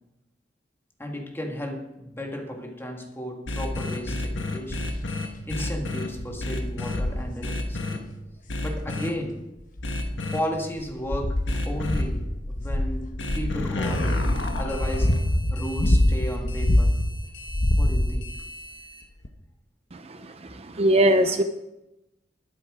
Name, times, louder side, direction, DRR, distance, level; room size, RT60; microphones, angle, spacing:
voice 1, 1.0-4.9 5.2-8.0 8.6-9.4 10.3-14.3 14.6-15.2 15.5-17.0 17.8-18.4, equal, 15° left, 2 dB, 1.9 m, -34 dB
sound 1, 3.5-6.1 6.4-7.0 7.4-8.0 8.5-9.1 9.8-10.4 11.5-12.0 13.2-19.0, left 2 dB, 85° left, 1.5 m, -31 dB
sound 2, 4.7-5.0 5.6-5.7 6.2-6.4 6.9-7.3 8.7-8.8 9.6-10.3 10.8-13.7 14.4-17.1 17.5-18.4 19.2-19.3, left 1 dB, 50° left, 1.1 m, -24 dB
voice 2, 19.9-21.4, right 1 dB, 35° right, 8 dB, 0.6 m, -22 dB
21.5 x 7.7 x 4.9 m, 0.95 s
head